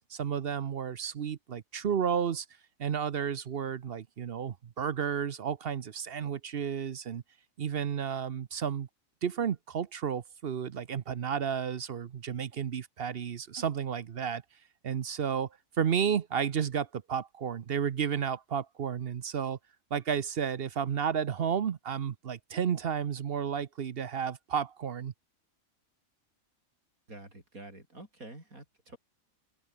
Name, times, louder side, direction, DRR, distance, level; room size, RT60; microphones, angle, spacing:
voice 1, 0.1-2.5 2.8-7.2 7.6-8.9 9.2-14.4 14.8-15.5 15.8-19.6 19.9-25.1, right 7 dB, 50° right, 0.9 m, -32 dB
voice 2, 27.1-29.0, right 2 dB, 85° right, 8.0 m, -48 dB
omnidirectional pair, 1.4 m